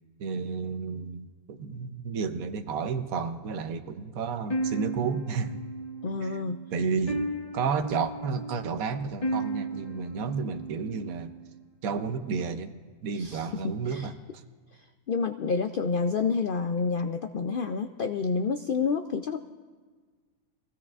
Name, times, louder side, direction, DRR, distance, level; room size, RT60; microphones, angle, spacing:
voice 1, 0.2-5.6 6.2-6.4 6.7-7.3 7.5-11.3 11.8-12.7 13.0-14.1, right 5 dB, 80° right, 9 dB, 1.2 m, -31 dB
sound 1, 4.5-11.6, right 2 dB, 30° left, 0.9 m, -35 dB
voice 2, 6.0-6.6 13.1-14.1 14.7-19.4, left 5 dB, 75° left, 7 dB, 0.5 m, -29 dB
23.0 x 16.0 x 2.4 m, 1.5 s
omnidirectional pair, 1.5 m